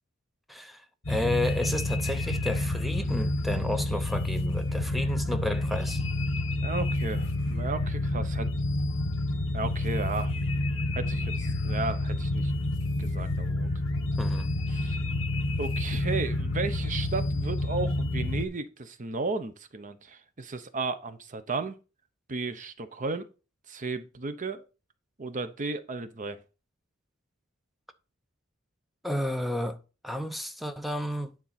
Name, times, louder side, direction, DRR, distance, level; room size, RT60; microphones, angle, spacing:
voice 1, 0.5-6.0 14.2-14.5 29.0-29.8 30.0-31.3, left 1 dB, ahead, 0.6 m, -32 dB
sound 1, 1.0-18.5, left 2 dB, 60° left, 1.4 m, -29 dB
voice 2, 6.6-8.5 9.5-10.3 10.9-12.5 13.0-13.7 14.7-15.0 15.6-21.7 22.3-23.3 23.7-24.6 25.2-26.4, right 3 dB, 35° right, 0.7 m, -34 dB
9.6 x 3.8 x 5.7 m
head